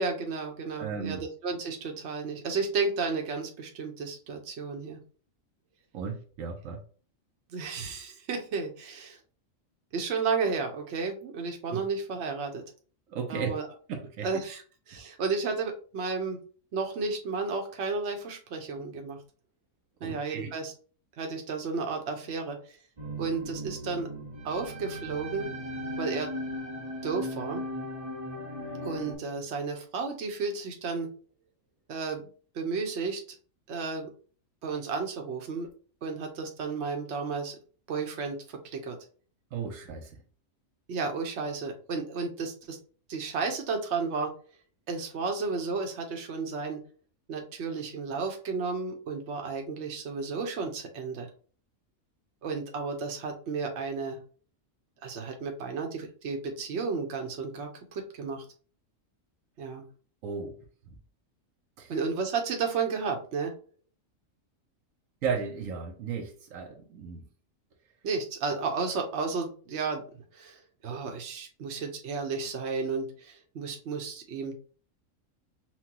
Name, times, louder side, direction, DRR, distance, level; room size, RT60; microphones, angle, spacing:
voice 1, 0.0-5.0 7.5-9.2 9.9-12.6 13.3-13.7 14.2-14.6 14.9-16.4 16.7-19.2 20.0-20.7 21.2-22.6 23.2-24.1 24.4-25.5 26.0-26.3 27.0-27.6 28.8-31.1 31.9-32.2 32.5-33.2 33.7-34.1 34.6-35.7 36.0-37.6 37.9-39.0 40.9-42.8 43.1-44.3 44.9-46.8 47.3-51.3 52.4-54.2 55.0-58.4 59.6-59.8 61.9-63.5 68.0-70.0 70.3-74.5, right 4 dB, 60° right, 1.1 m, -32 dB
voice 2, 0.8-1.2 5.9-6.8 11.7-11.8 13.1-13.5 13.9-14.3 14.5-14.6 14.9-15.0 20.0-20.5 39.5-40.2 60.2-60.5 60.9-61.0 61.8-61.9 65.2-67.2, right 6 dB, 80° right, 1.1 m, -35 dB
sound 1, 23.0-29.1, equal, 30° right, 0.7 m, -37 dB
5.8 x 2.3 x 2.9 m
omnidirectional pair, 1.4 m